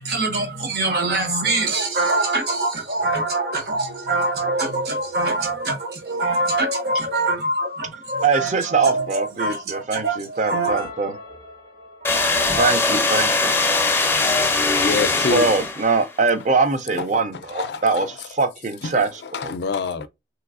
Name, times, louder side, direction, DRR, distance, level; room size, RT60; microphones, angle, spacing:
voice 1, 0.0-10.9, right 2 dB, 60° right, 0.8 m, -24 dB
voice 2, 8.2-11.1 12.6-13.5 15.3-19.5, right 4 dB, 40° right, 0.4 m, -22 dB
sound 1, 10.6-15.0, equal, 80° right, 1.8 m, -40 dB
sound 2, 12.0-16.1, left 3 dB, 15° left, 0.5 m, -21 dB
voice 3, 14.8-15.5 17.0-17.1 17.3-18.1 18.8-20.1, left 4 dB, 70° left, 0.4 m, -27 dB
3.3 x 3.0 x 2.4 m
head